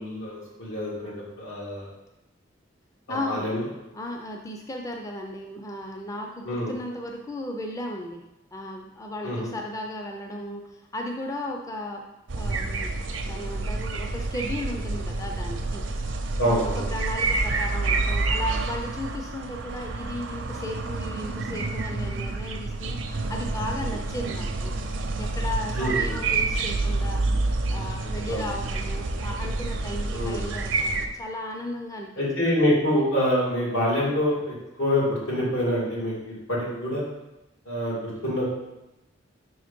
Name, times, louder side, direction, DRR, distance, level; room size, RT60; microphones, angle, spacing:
voice 1, 0.0-1.9 3.1-3.6 6.4-6.7 9.2-9.5 16.4-16.9 25.8-26.2 28.3-28.4 30.1-30.4 32.2-37.0 37.7-38.4, equal, 85° left, -6 dB, 2.2 m, -26 dB
voice 2, 3.1-3.5 3.9-8.2 8.5-12.1 12.4-12.9 13.2-15.8 16.4-27.2 27.7-32.1, left 1 dB, 15° left, 2 dB, 0.4 m, -35 dB
sound 1, 12.3-31.1, right 3 dB, 70° right, 0.6 m, -28 dB
5.0 x 3.8 x 5.1 m, 0.94 s
head